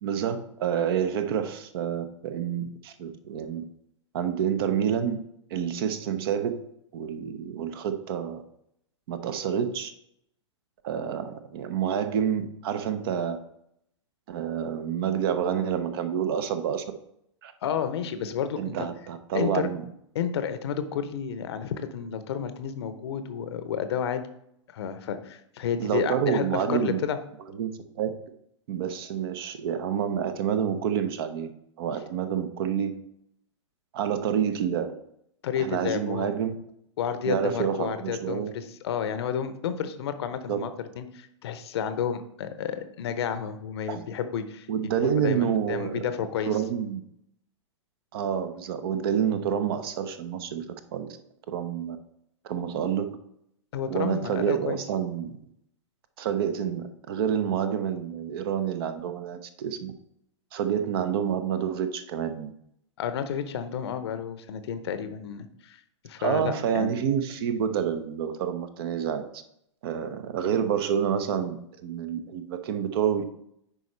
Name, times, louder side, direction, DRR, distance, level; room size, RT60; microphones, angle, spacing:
voice 1, 0.0-3.6 4.1-5.2 5.5-6.6 6.9-8.4 9.1-9.9 10.8-13.4 14.3-16.8 17.4-17.5 18.6-19.8 25.8-27.0 27.5-28.1 28.7-31.5 31.8-33.0 33.9-34.9 35.6-36.6 37.2-38.5 40.5-40.6 43.9-44.1 44.7-47.0 48.1-50.6 50.9-51.1 51.5-52.0 52.4-53.2 53.9-55.4 56.2-59.9 60.5-62.5 66.2-69.4 69.8-73.2, right 8 dB, 50° right, 9 dB, 0.7 m, -28 dB
voice 2, 17.6-18.9 19.3-19.7 20.1-24.2 24.7-27.2 35.4-36.3 37.0-44.7 45.2-46.5 53.7-54.8 63.0-66.9, left 8 dB, 55° left, 10 dB, 0.8 m, -31 dB
10.0 x 4.3 x 3.2 m, 0.76 s
figure-of-eight pair, 105°, 16 cm